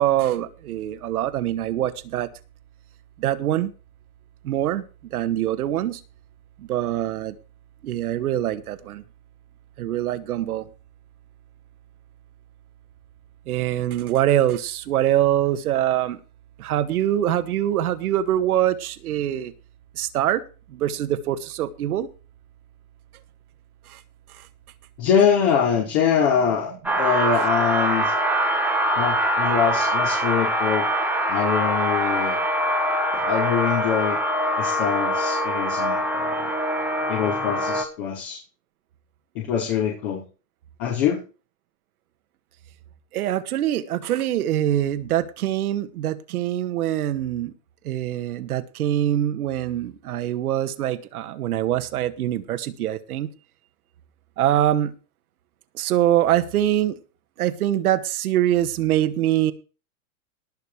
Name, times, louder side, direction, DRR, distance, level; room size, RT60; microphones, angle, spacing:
voice 1, 0.0-2.3 3.2-3.7 4.4-4.8 5.1-6.0 6.6-7.4 7.8-9.0 9.8-10.7 13.5-16.2 16.6-19.5 20.0-20.4 20.7-22.1 23.9-24.0 24.3-24.5 43.1-47.5 47.8-53.3 54.4-54.9 55.7-57.0 57.4-59.5, right 12 dB, 80° right, 1.8 m, -24 dB
voice 2, 25.0-28.1 29.0-30.9 31.3-32.4 33.1-34.2 34.6-36.5 37.1-38.4 39.3-40.2 40.8-41.2, left 7 dB, 55° left, 5.1 m, -24 dB
sound 1, 26.8-37.8, equal, 5° right, 1.7 m, -23 dB
19.5 x 6.6 x 4.9 m
supercardioid pair, 135°, 44 cm